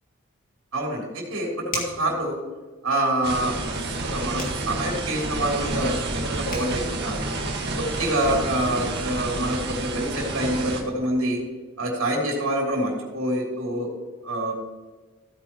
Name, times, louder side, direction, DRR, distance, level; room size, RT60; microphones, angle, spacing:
voice 1, 0.7-2.4 2.8-7.2 7.7-11.4 11.8-13.9 14.2-14.5, right 1 dB, 65° right, -2 dB, 3.1 m, -26 dB
sound 1, 1.7-2.1 4.4-4.6 6.2-6.3 6.5-6.7, left 2 dB, 35° left, 2.6 m, -32 dB
sound 2, 3.2-10.8, right 2 dB, 50° right, 1.7 m, -29 dB
15.0 x 9.1 x 3.0 m, 1.3 s
head